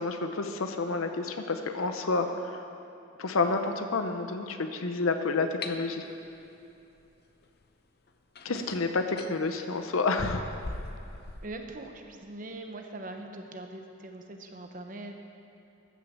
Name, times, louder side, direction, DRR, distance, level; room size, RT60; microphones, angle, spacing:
voice 1, 0.0-2.3 3.2-6.0 8.4-10.4, left 3 dB, 80° left, 6 dB, 0.7 m, -29 dB
sound 1, 5.6-5.8 7.6-7.7 8.3-9.4 10.2-11.5, left 2 dB, 50° left, 0.7 m, -37 dB
voice 2, 11.4-15.2, right 2 dB, 40° right, 4 dB, 0.9 m, -42 dB
14.0 x 6.4 x 7.4 m, 2.7 s
head